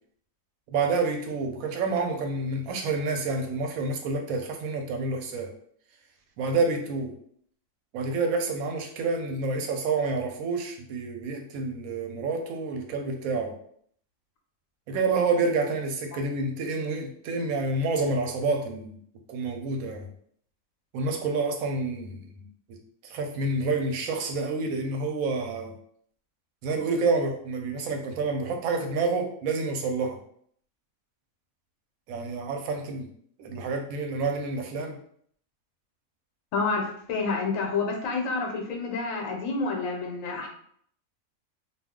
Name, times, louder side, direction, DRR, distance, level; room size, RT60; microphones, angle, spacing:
voice 1, 0.7-5.5 6.4-7.1 7.9-13.5 14.9-19.0 19.3-20.1 20.9-22.5 23.0-25.8 26.6-30.2 32.1-33.1 33.4-35.0, right 3 dB, 85° right, 3 dB, 1.0 m, -28 dB
voice 2, 36.5-40.5, left 4 dB, 80° left, 2 dB, 1.0 m, -29 dB
2.4 x 2.3 x 3.5 m, 0.63 s
omnidirectional pair, 1.4 m